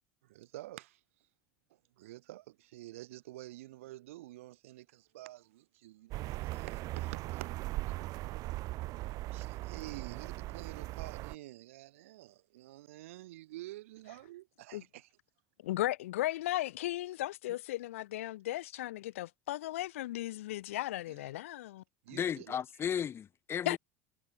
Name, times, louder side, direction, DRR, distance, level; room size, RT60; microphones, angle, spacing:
voice 1, 0.2-1.0 2.0-8.3 9.3-15.1 21.1-21.2 22.0-22.6, right 16 dB, 75° right, 2.6 m, -49 dB
sound 1, 6.1-11.4, right 18 dB, 55° right, 0.6 m, -39 dB
voice 2, 15.6-21.8 23.7-23.8, left 15 dB, 80° left, 0.7 m, -36 dB
voice 3, 22.1-23.8, left 8 dB, 35° left, 0.8 m, -35 dB
hypercardioid pair, 80°, 7 cm